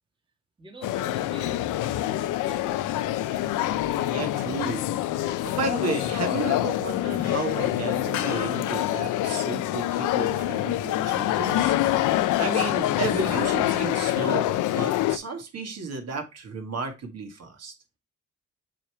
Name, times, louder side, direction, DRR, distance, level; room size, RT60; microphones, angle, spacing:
voice 1, 0.6-3.5, right 2 dB, 15° right, 1.7 m, -47 dB
sound 1, 0.8-15.2, left 14 dB, 85° left, 0.6 m, -26 dB
voice 2, 4.1-4.8 5.4-11.8 12.4-17.7, right 3 dB, 55° right, 1.9 m, -33 dB
7.4 x 3.6 x 4.4 m
cardioid pair, 90°, 30 cm